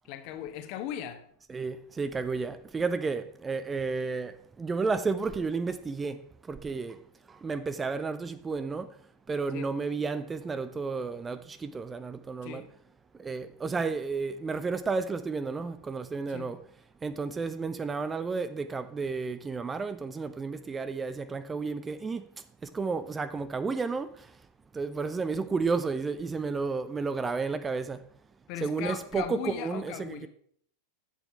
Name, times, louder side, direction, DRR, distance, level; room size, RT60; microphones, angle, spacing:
voice 1, 0.1-1.2 9.5-9.7 12.4-12.7 16.3-16.5 28.5-30.3, left 11 dB, 45° left, 1.3 m, -38 dB
voice 2, 1.5-7.0 7.3-9.0 9.3-12.6 13.2-16.6 17.0-22.3 22.6-24.4 24.7-28.0 28.6-30.3, right 4 dB, 15° right, 0.5 m, -32 dB
11.0 x 8.0 x 4.6 m
figure-of-eight pair, 90°, 0 cm